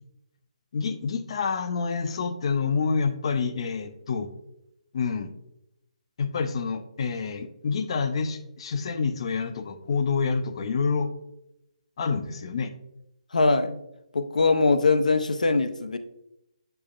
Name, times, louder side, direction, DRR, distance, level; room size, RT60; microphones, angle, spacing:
voice 1, 0.7-4.3 4.9-5.3 6.2-11.1 12.0-12.7, left 5 dB, 45° left, 10 dB, 0.6 m, -27 dB
voice 2, 13.3-13.8 14.1-16.0, left 3 dB, 90° left, 9 dB, 0.6 m, -22 dB
6.8 x 6.1 x 2.4 m, 0.84 s
hypercardioid pair, 160°, 4 cm